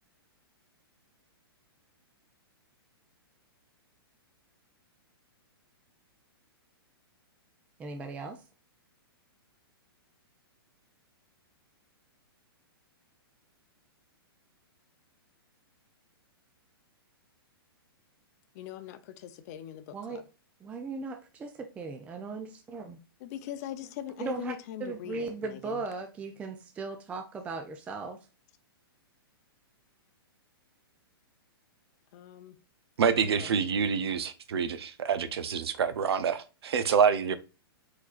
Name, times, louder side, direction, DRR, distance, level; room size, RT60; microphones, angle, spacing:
voice 1, 7.8-8.4 19.9-20.2 20.6-23.0 24.2-24.5 24.8-28.2, right 4 dB, 10° right, 0.4 m, -37 dB
voice 2, 18.5-20.2 23.2-25.8 32.1-32.6 33.0-33.5, left 11 dB, 40° left, 0.6 m, -41 dB
voice 3, 33.0-37.4, right 6 dB, 80° right, 0.7 m, -27 dB
4.8 x 4.2 x 2.4 m
hypercardioid pair, 145°, 13 cm